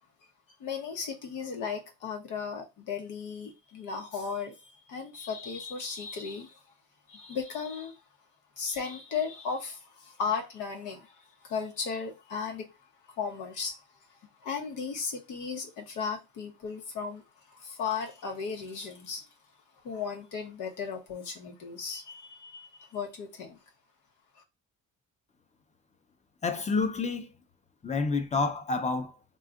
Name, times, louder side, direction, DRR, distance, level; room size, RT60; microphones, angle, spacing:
voice 1, 0.6-6.6 7.1-8.0 8.6-12.7 13.2-13.8 14.4-19.2 19.8-23.6, left 5 dB, 85° left, 1.0 m, -36 dB
voice 2, 26.4-27.3 27.8-29.1, left 4 dB, 25° left, 0.6 m, -28 dB
2.7 x 2.4 x 3.6 m
cardioid pair, 90°, 30 cm